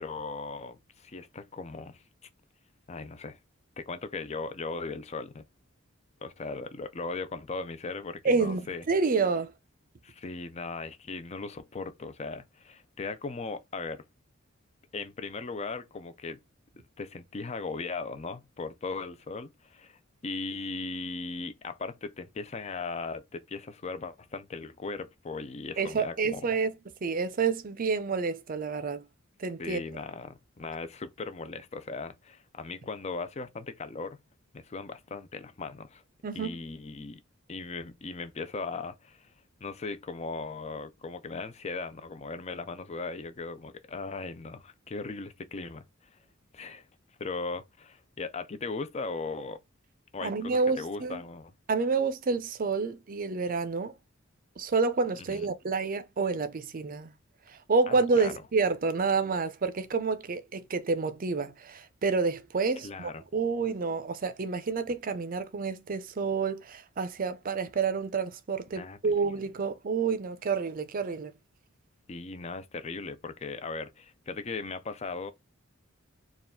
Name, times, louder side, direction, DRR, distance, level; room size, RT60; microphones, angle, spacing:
voice 1, 0.0-2.0 2.9-3.4 3.8-5.4 6.2-8.8 10.0-14.0 14.9-16.4 17.0-26.5 29.6-34.2 34.5-36.0 36.3-37.2 37.5-39.3 39.6-46.2 46.5-46.9 47.2-49.6 50.1-51.5 55.2-55.5 57.9-58.3 62.8-63.2 68.7-69.3 72.1-75.3, left 4 dB, 30° left, 0.5 m, -38 dB
voice 2, 8.2-9.5 25.8-26.8 27.0-29.0 29.4-29.8 36.2-36.6 50.2-51.2 51.7-53.9 54.6-57.1 57.5-71.3, right 4 dB, 45° right, 0.5 m, -29 dB
4.6 x 2.4 x 3.6 m
head